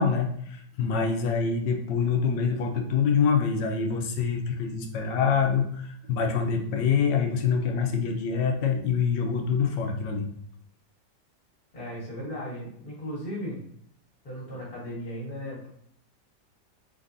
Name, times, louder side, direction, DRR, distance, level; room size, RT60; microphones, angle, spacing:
voice 1, 0.0-10.3, left 6 dB, 75° left, 3 dB, 1.3 m, -25 dB
voice 2, 11.7-13.6 14.2-15.7, equal, 55° left, -8 dB, 1.9 m, -36 dB
4.1 x 3.7 x 2.6 m, 0.66 s
omnidirectional pair, 1.9 m